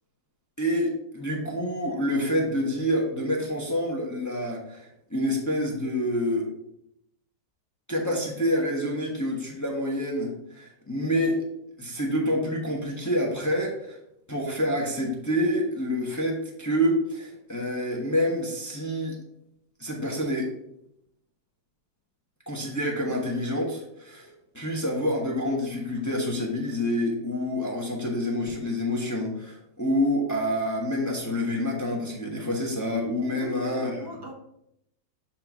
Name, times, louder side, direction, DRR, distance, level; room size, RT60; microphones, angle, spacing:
voice 1, 0.6-6.5 7.9-11.4 11.8-14.0 14.3-19.2 19.8-20.5 22.5-34.0, equal, 15° left, -1 dB, 0.7 m, -27 dB
voice 2, 33.3-34.3, left 1 dB, 35° right, 2 dB, 0.4 m, -40 dB
7.6 x 2.6 x 5.8 m, 0.78 s
omnidirectional pair, 1.9 m